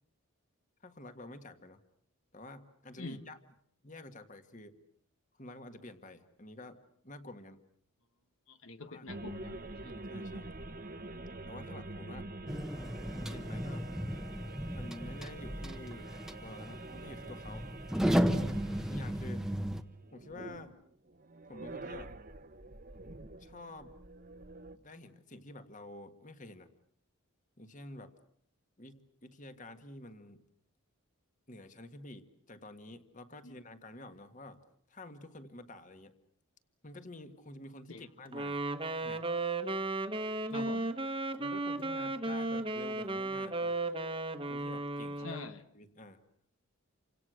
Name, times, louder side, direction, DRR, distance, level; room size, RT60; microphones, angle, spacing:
voice 1, 0.8-1.8 2.3-3.4 3.8-4.8 5.4-7.6 8.8-9.1 9.8-10.5 11.5-12.3 13.1-13.9 14.7-17.7 18.9-19.5 20.1-20.7 21.5-22.1 23.4-23.9 24.7-26.7 27.6-28.2 28.8-30.5 31.5-34.6 34.9-36.1 36.8-38.6 39.0-39.3 40.5-40.7 41.4-43.8 44.5-45.4 45.7-46.2, left 1 dB, 35° left, 9 dB, 1.8 m, -49 dB
voice 2, 8.5-9.9 33.4-33.6 37.9-38.1 40.5-40.9 45.2-45.6, left 3 dB, 70° left, 9 dB, 1.4 m, -45 dB
sound 1, 9.1-20.8 21.1-24.8, right 2 dB, 40° right, 1.1 m, -47 dB
sound 2, 12.5-19.8, equal, ahead, 1.1 m, -34 dB
Wind instrument woodwind instrument, 38.3-45.5, right 2 dB, 25° right, 1.3 m, -35 dB
29.5 x 26.0 x 6.5 m, 0.66 s
head